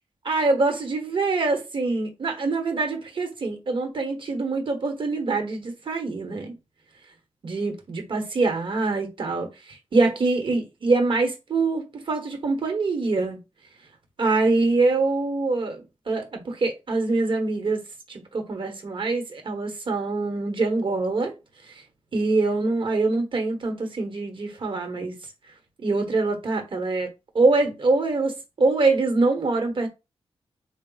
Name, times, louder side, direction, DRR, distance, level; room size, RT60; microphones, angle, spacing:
voice 1, 0.2-6.5 7.4-13.4 14.2-17.8 18.1-21.3 21.7-21.8 22.1-25.2 25.8-27.1 27.3-29.9, right 3 dB, 55° right, 1.2 m, -24 dB
3.8 x 2.3 x 3.9 m
wide cardioid pair, 105°, 10 cm